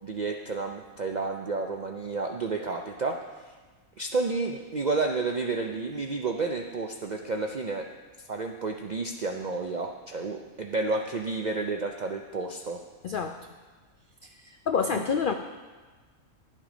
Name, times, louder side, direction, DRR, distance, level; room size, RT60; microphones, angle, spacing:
voice 1, 0.0-3.2 4.0-7.8 8.3-12.8 14.9-15.0, right 3 dB, 65° right, 3 dB, 0.4 m, -31 dB
voice 2, 13.0-13.4 14.2-15.3, left 6 dB, 80° left, 6 dB, 0.4 m, -28 dB
11.5 x 7.7 x 5.0 m, 1.3 s
omnidirectional pair, 1.5 m